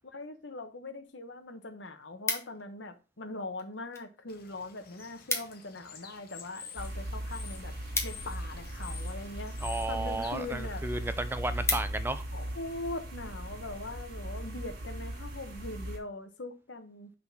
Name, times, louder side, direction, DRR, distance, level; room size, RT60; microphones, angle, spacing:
voice 1, 0.1-7.7 8.0-9.5 9.9-10.8 12.3-17.1, left 2 dB, 70° left, 1.1 m, -41 dB
sound 1, 1.1-1.2 1.5-2.9 3.6-4.1 4.4-4.5 4.8-4.9 5.1-5.7 6.1-8.9 9.6-10.0 10.5-10.6 10.9-11.0 11.3-12.3 12.8-13.0, left 3 dB, 15° left, 1.1 m, -36 dB
Bird / Water, 4.3-11.7, left 6 dB, 55° left, 1.1 m, -50 dB
sound 2, 6.8-16.0, right 1 dB, 55° right, 2.1 m, -38 dB
voice 2, 9.6-12.2, right 2 dB, 10° right, 0.4 m, -33 dB
5.8 x 3.9 x 5.9 m
head